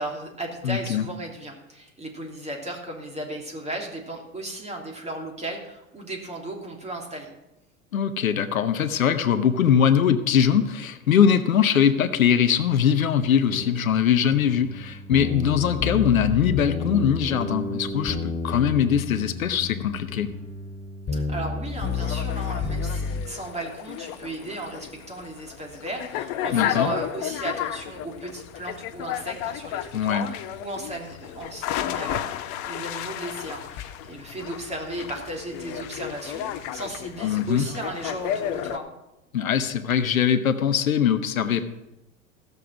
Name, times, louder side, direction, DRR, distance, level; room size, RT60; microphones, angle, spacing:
voice 1, 0.0-7.3 21.1-38.9, right 1 dB, 15° right, 1 dB, 3.0 m, -35 dB
voice 2, 0.6-1.1 7.9-20.3 26.5-26.9 29.9-30.3 37.2-37.7 39.3-41.7, left 8 dB, 80° left, 11 dB, 1.0 m, -22 dB
sound 1, 13.5-23.3, left 4 dB, 25° left, 3.1 m, -31 dB
sound 2, 21.8-38.8, left 11 dB, 45° left, 0.9 m, -33 dB
16.0 x 6.8 x 6.2 m, 0.95 s
hypercardioid pair, 85°, 41 cm